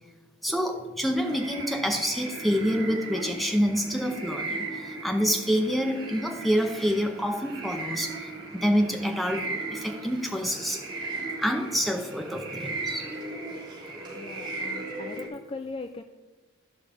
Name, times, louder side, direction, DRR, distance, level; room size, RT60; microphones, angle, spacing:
voice 1, 0.4-10.8 11.4-13.1, equal, ahead, 4 dB, 0.7 m, -27 dB
sound 1, 1.1-15.3, right 2 dB, 20° right, 3.6 m, -37 dB
voice 2, 14.1-16.0, left 3 dB, 25° left, 7 dB, 0.3 m, -39 dB
13.5 x 5.3 x 4.8 m, 1.2 s
head